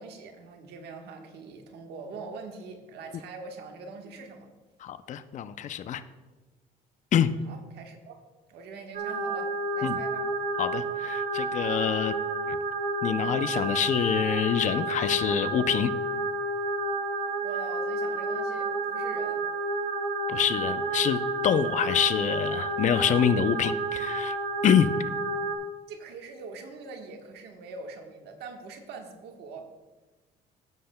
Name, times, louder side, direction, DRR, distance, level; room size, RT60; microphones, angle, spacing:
voice 1, 0.0-4.5 7.4-8.2 8.5-10.3 17.4-19.4 25.9-29.7, right 4 dB, 75° right, 3 dB, 1.3 m, -43 dB
voice 2, 4.8-6.0 7.1-7.3 9.8-10.0 10.6-12.1 12.5-12.6 13.0-15.9 20.3-24.3 24.6-24.9, left 9 dB, 45° left, 12 dB, 0.5 m, -26 dB
sound 1, 8.9-25.6, right 2 dB, 60° right, 1.4 m, -30 dB
16.0 x 7.7 x 2.2 m, 1.2 s
cardioid pair, 110°, 17 cm